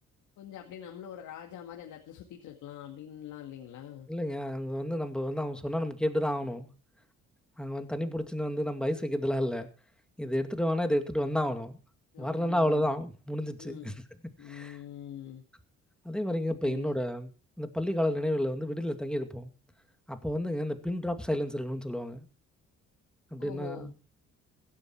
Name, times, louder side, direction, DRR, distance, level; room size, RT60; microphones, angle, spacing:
voice 1, 0.4-4.1 12.1-12.9 13.6-14.0 14.4-15.4 16.6-16.9 23.4-23.9, left 10 dB, 85° left, 2.2 m, -44 dB
voice 2, 4.1-6.7 7.6-9.7 10.2-11.8 12.2-13.9 14.5-14.8 16.0-17.3 17.6-19.5 20.1-22.2 23.3-23.9, equal, 5° left, 2.4 m, -31 dB
16.5 x 12.5 x 4.6 m
cardioid pair, 90°, 30 cm